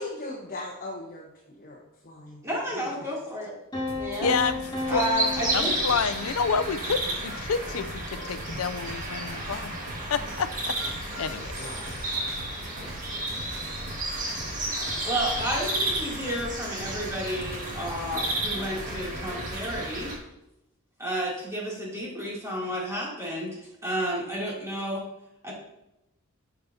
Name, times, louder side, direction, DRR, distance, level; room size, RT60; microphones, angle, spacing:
voice 1, 0.0-2.4 2.7-2.9 11.6-12.1, left 2 dB, 40° left, -2 dB, 1.3 m, -39 dB
voice 2, 2.4-3.5 4.0-4.3 4.9-5.7 15.0-20.1 21.0-25.0 25.4-25.5, equal, 15° right, -5 dB, 2.9 m, -31 dB
sound 1, 3.7-6.6, left 2 dB, 20° left, 2.4 m, -34 dB
sound 2, 3.9-19.9, right 1 dB, 65° right, 2.1 m, -42 dB
voice 3, 4.2-5.0 5.5-9.7 10.1-10.7 11.2-11.6, left 5 dB, 70° left, 12 dB, 0.5 m, -29 dB
sound 3, 4.2-20.2, right 2 dB, 40° right, 1.9 m, -32 dB
11.0 x 6.7 x 2.8 m, 0.88 s
head